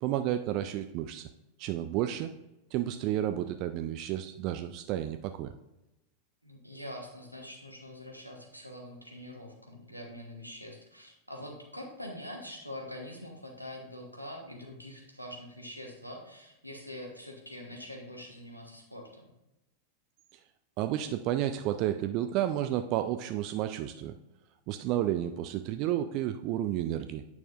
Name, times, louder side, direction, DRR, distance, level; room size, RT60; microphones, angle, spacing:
voice 1, 0.0-1.3 1.6-2.3 2.7-5.5 20.8-24.1 24.7-27.2, right 12 dB, 40° right, 9 dB, 0.3 m, -31 dB
voice 2, 6.4-19.3, left 1 dB, 90° right, 0 dB, 1.3 m, -44 dB
8.9 x 5.8 x 2.5 m, 0.95 s
figure-of-eight pair, 90°, 0 cm